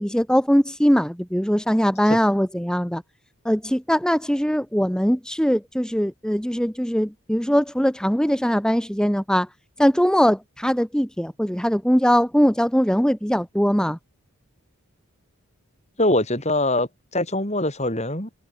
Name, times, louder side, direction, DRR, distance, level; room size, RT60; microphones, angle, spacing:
voice 1, 0.0-3.0 3.4-9.5 9.8-14.0, equal, 5° left, 1.6 m, -21 dB
voice 2, 16.0-18.3, left 1 dB, 30° left, 6.4 m, -23 dB
head